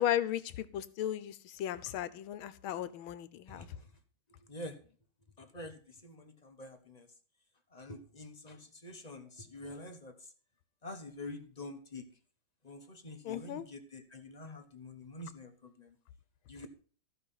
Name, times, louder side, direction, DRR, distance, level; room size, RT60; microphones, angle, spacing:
voice 1, 0.0-3.7 13.2-13.7, left 11 dB, 85° left, 15 dB, 1.6 m, -35 dB
voice 2, 5.4-7.1 7.7-10.1 10.8-12.0 12.6-15.5 15.8-15.9 16.5-16.7, left 2 dB, 25° left, 6 dB, 1.0 m, -46 dB
14.5 x 5.7 x 5.7 m, 0.42 s
omnidirectional pair, 2.2 m